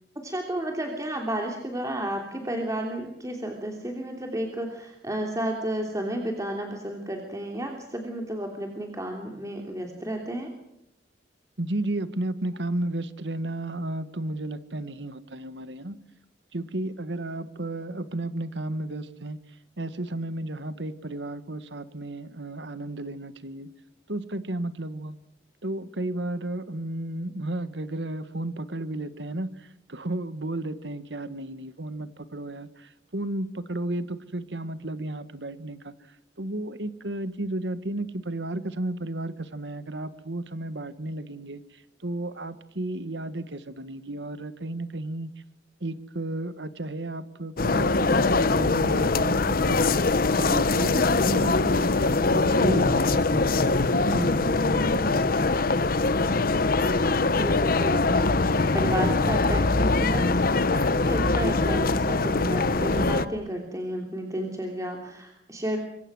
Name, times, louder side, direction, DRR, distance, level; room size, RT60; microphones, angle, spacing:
voice 1, 0.2-10.5 57.3-65.8, right 1 dB, 20° right, 2 dB, 3.0 m, -32 dB
voice 2, 11.6-16.0 16.5-19.4 19.8-23.7 24.1-25.2 25.6-35.9 36.4-45.3 45.8-49.8 50.4-55.9, right 1 dB, 80° right, 12 dB, 1.7 m, -33 dB
sound 1, 47.6-63.3, left 3 dB, 55° left, 1.0 m, -22 dB
26.5 x 23.5 x 6.3 m, 0.78 s
head